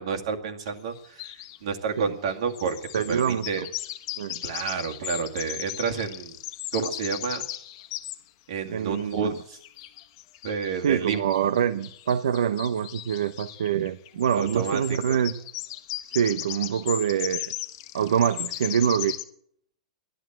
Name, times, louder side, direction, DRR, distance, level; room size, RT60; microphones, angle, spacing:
voice 1, 0.0-2.8 3.1-3.6 4.4-6.4 6.7-7.4 8.5-9.6 10.4-11.5 14.3-15.2, right 6 dB, 65° right, 4 dB, 2.2 m, -30 dB
sound 1, 0.6-0.7 1.0-1.6 2.3-8.2 8.7-19.2, left 15 dB, 40° left, 1.1 m, -37 dB
voice 2, 2.9-3.6 4.2-4.4 8.7-9.3 10.7-15.4 16.0-17.5 17.9-19.1, right 8 dB, 85° right, 10 dB, 0.9 m, -25 dB
15.0 x 11.5 x 7.7 m, 0.65 s
supercardioid pair, 160°, 3 cm